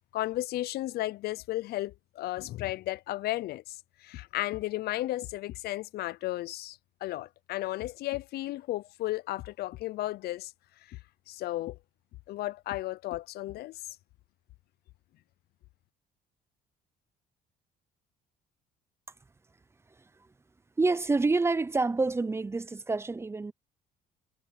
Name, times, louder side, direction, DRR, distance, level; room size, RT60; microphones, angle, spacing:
voice 1, 0.1-10.5 10.9-11.0 11.3-11.8 12.3-13.8, left 16 dB, 70° left, 0.6 m, -34 dB
voice 2, 20.8-23.5, right 3 dB, 15° right, 0.7 m, -27 dB
cardioid pair, 110°, 17 cm